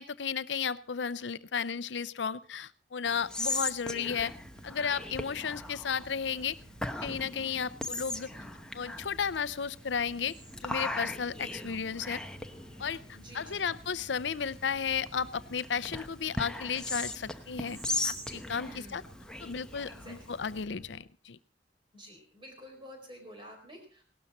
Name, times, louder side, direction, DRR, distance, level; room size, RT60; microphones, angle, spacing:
voice 1, 0.0-4.3 4.6-6.6 7.0-8.3 8.7-10.3 10.6-12.2 12.8-13.0 13.3-17.8 18.0-19.0 19.4-21.4, left 6 dB, 90° left, 17 dB, 0.6 m, -33 dB
Whispering, 3.1-20.6, left 2 dB, 5° left, 0.9 m, -39 dB
sound 1, 4.2-21.0, right 1 dB, 75° right, 5.1 m, -53 dB
voice 2, 11.4-11.8 13.1-13.7 18.6-19.1 19.8-20.4 21.9-24.0, equal, 30° right, 3 dB, 4.4 m, -50 dB
18.0 x 12.5 x 4.3 m, 0.39 s
head